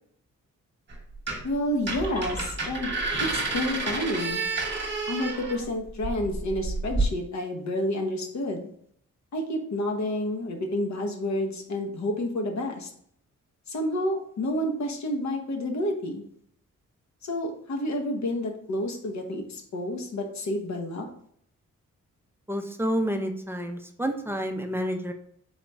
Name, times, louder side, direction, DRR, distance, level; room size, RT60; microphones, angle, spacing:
sound 1, 0.9-1.6 1.8-7.1, right 3 dB, 35° right, 1.1 m, -30 dB
voice 1, 1.4-2.9 3.2-4.4 5.1-8.7 9.3-12.9 13.7-16.2 17.2-21.1, left 1 dB, 60° left, 3 dB, 0.9 m, -29 dB
voice 2, 22.5-25.1, equal, 5° right, 5 dB, 0.5 m, -29 dB
4.0 x 3.0 x 3.4 m, 0.67 s
cardioid pair, 85°, 31 cm